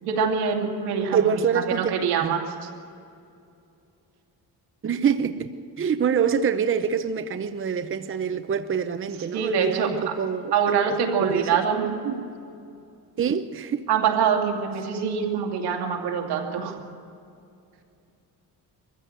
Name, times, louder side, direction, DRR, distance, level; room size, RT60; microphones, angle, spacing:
voice 1, 0.0-1.2 1.7-2.5 9.3-10.1 10.5-12.2 13.9-16.8, right 6 dB, 85° right, 2.7 m, -24 dB
voice 2, 1.1-1.9 2.2-2.4 4.8-10.6 11.2-11.6 13.2-13.9, right 7 dB, 35° right, 0.8 m, -25 dB
22.5 x 15.0 x 8.0 m
cardioid pair, 110°, 38 cm